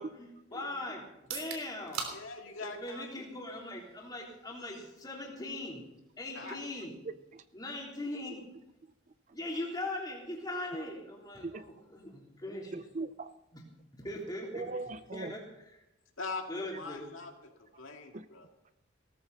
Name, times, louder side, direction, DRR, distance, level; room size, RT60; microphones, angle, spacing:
voice 1, 0.0-2.1 2.6-5.8 6.2-6.9 7.5-8.4 9.3-12.7 14.0-14.6 15.1-15.4 16.5-17.1, left 1 dB, 20° left, -2 dB, 3.3 m, -40 dB
sound 1, 1.1-15.0, right 5 dB, 85° right, 3.3 m, -50 dB
voice 2, 2.1-3.1 6.3-6.6 14.1-14.3 14.6-14.8 16.2-18.5, left 3 dB, 70° left, 2 dB, 2.2 m, -43 dB
voice 3, 7.0-7.4 11.4-11.6 12.7-13.3 14.5-15.4 17.7-17.8 18.1-18.2, right 3 dB, 35° right, 13 dB, 0.4 m, -40 dB
18.0 x 14.0 x 4.1 m, 0.91 s
head